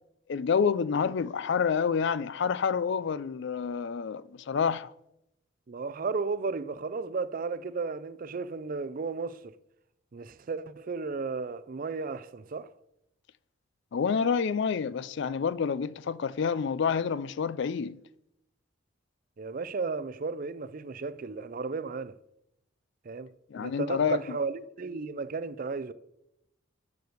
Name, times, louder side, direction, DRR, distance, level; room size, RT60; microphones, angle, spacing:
voice 1, 0.3-4.9 13.9-18.0 23.5-24.4, left 6 dB, 55° left, 0.4 m, -28 dB
voice 2, 5.7-9.5 10.1-12.7 19.4-22.1 23.1-23.3 23.6-25.9, right 4 dB, 40° right, 0.4 m, -34 dB
6.9 x 6.7 x 7.9 m
head